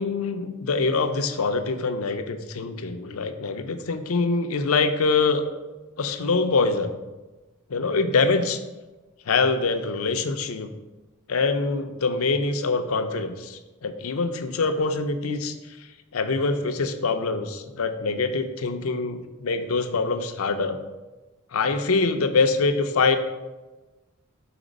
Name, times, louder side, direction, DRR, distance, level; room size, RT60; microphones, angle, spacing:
voice 1, 0.0-5.4 6.0-6.9 7.7-8.6 9.3-10.7 11.3-15.5 16.1-20.8 21.5-23.2, left 4 dB, 75° left, 8 dB, 0.5 m, -24 dB
5.0 x 4.3 x 5.1 m, 1.1 s
head